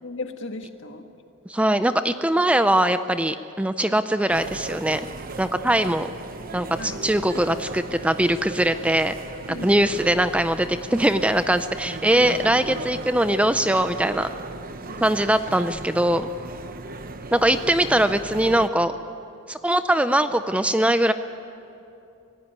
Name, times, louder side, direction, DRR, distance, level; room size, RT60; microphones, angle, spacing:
voice 1, 0.0-1.1 6.8-7.0 7.5-7.6 9.5-10.1 12.1-12.4 14.5-15.1, left 2 dB, 60° left, 6 dB, 1.7 m, -37 dB
voice 2, 1.5-5.1 5.4-6.1 6.5-9.1 9.6-14.3 15.0-16.3 17.3-19.0 19.5-21.1, right 1 dB, 5° right, 10 dB, 0.5 m, -21 dB
sound 1, 4.3-18.7, right 3 dB, 45° right, 1.0 m, -36 dB
26.0 x 17.5 x 9.4 m, 2.7 s
head